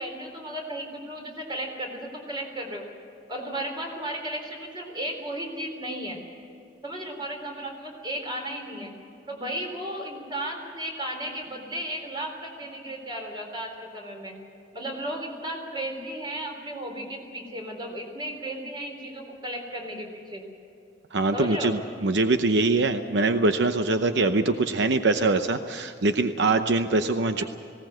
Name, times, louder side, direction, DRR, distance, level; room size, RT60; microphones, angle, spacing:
voice 1, 0.0-2.9 3.3-6.2 6.8-8.9 9.3-14.3 14.7-20.4 21.3-21.8 27.4-27.5, right 1 dB, 25° right, 2 dB, 3.9 m, -34 dB
voice 2, 21.1-27.4, right 3 dB, 80° right, 8 dB, 0.8 m, -23 dB
19.5 x 17.5 x 7.9 m, 2.7 s
head